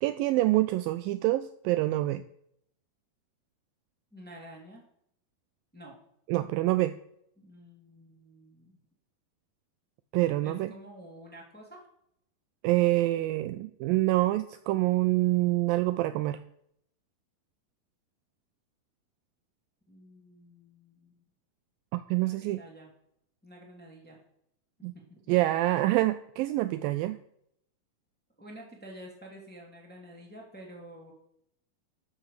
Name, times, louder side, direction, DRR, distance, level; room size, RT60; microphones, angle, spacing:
voice 1, 0.0-2.2 6.3-6.9 10.1-10.7 12.6-16.4 21.9-22.6 24.8-24.9 25.3-27.2, right 17 dB, 80° right, 12 dB, 2.1 m, -26 dB
voice 2, 4.1-4.8 5.7-5.9 7.4-8.8 10.4-11.8 19.9-21.2 22.1-22.9 23.4-24.2 24.9-25.3 28.4-31.1, right 1 dB, 5° left, -1 dB, 2.2 m, -49 dB
13.0 x 5.7 x 6.7 m, 0.72 s
omnidirectional pair, 4.3 m